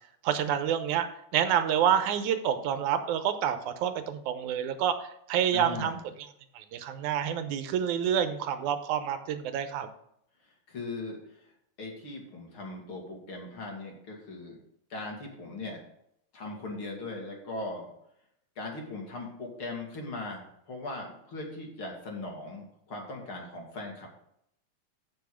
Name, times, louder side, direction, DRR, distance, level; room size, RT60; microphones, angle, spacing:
voice 1, 0.2-1.1 1.3-6.0 6.6-9.9, right 9 dB, 90° right, 9 dB, 2.3 m, -28 dB
voice 2, 5.5-6.0 10.7-11.5 11.8-14.6 14.9-15.8 16.3-17.9 18.6-24.1, left 2 dB, 45° left, 0 dB, 2.8 m, -39 dB
8.0 x 7.1 x 6.4 m, 0.75 s
omnidirectional pair, 3.4 m